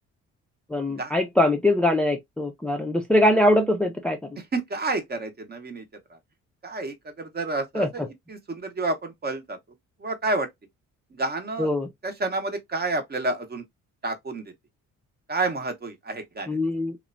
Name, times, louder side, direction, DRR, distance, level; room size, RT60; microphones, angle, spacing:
voice 1, 0.7-4.2 7.7-8.1 11.6-11.9 16.5-17.0, left 1 dB, 5° left, 0.4 m, -22 dB
voice 2, 4.5-6.2 6.6-8.0 8.3-9.6 10.0-10.5 11.1-11.7 12.0-13.6 14.0-14.5 15.3-16.7, right 2 dB, 30° right, 0.8 m, -29 dB
3.0 x 2.1 x 2.4 m
cardioid pair, 90°, 30 cm